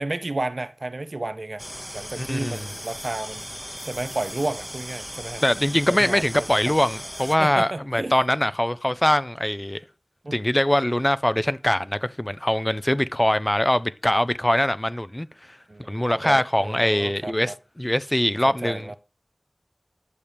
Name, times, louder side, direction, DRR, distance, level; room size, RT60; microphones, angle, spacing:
voice 1, 0.0-1.6 1.9-3.5 3.8-5.4 6.0-6.2 7.4-8.1 10.2-10.4 15.7-17.5 18.5-19.0, right 2 dB, 70° right, 0.6 m, -31 dB
sound 1, 1.6-7.4, equal, 5° left, 0.8 m, -37 dB
voice 2, 2.2-2.7 5.4-9.8 10.3-15.6 15.9-19.0, left 1 dB, 25° left, 0.5 m, -23 dB
11.5 x 6.6 x 3.4 m
wide cardioid pair, 45°, 0 cm